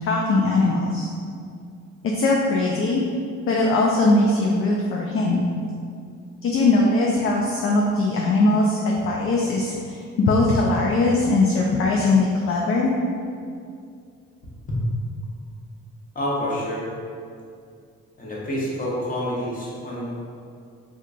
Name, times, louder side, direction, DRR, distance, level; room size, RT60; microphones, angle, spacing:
voice 1, 0.0-1.1 2.1-3.0 3.5-5.4 6.4-12.9, left 2 dB, 45° left, -2 dB, 0.4 m, -20 dB
voice 2, 16.1-16.9 18.2-20.2, left 1 dB, 30° left, -6 dB, 1.0 m, -28 dB
3.6 x 2.7 x 2.4 m, 2.3 s
cardioid pair, 90°, 30 cm